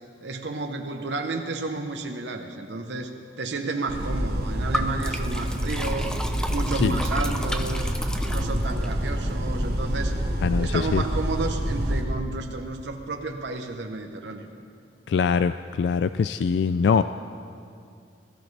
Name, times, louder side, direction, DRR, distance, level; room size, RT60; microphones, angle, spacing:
voice 1, 0.2-8.0 8.3-10.2 10.5-14.5, right 3 dB, 85° right, 4 dB, 0.9 m, -32 dB
sound 1, 3.9-12.0, equal, 60° right, 1.5 m, -27 dB
Liquid, 4.7-8.9, equal, 5° left, 0.5 m, -33 dB
voice 2, 10.4-11.0 15.1-17.0, left 6 dB, 80° left, 12 dB, 0.3 m, -23 dB
20.5 x 14.0 x 3.3 m, 2.4 s
head